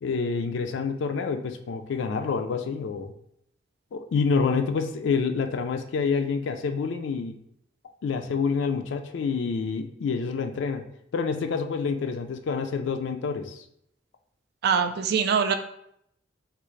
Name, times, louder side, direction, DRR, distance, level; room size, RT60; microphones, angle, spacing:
voice 1, 0.0-3.1 3.9-7.3 8.0-10.8 11.1-13.6, left 5 dB, 65° left, 6 dB, 0.3 m, -27 dB
voice 2, 14.6-15.5, right 6 dB, 55° right, 7 dB, 0.3 m, -23 dB
3.6 x 2.4 x 3.1 m, 0.73 s
head